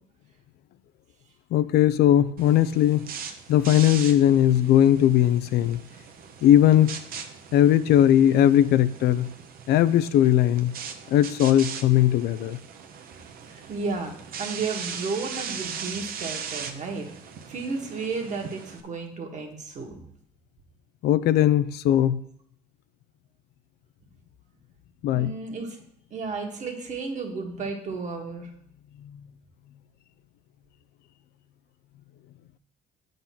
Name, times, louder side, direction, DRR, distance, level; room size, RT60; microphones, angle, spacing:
voice 1, 1.5-3.1 3.5-5.8 6.4-7.0 7.5-9.3 9.7-10.8 11.1-12.6 21.0-22.2 25.0-25.3, left 11 dB, 70° left, 15 dB, 0.4 m, -19 dB
sound 1, 2.4-18.8, right 6 dB, 60° right, 0.8 m, -39 dB
voice 2, 13.4-14.1 14.4-17.1 17.5-20.0 25.1-25.8 26.1-28.5, right 4 dB, 45° right, 2 dB, 1.5 m, -33 dB
8.3 x 4.0 x 5.9 m, 0.69 s
cardioid pair, 110°, 17 cm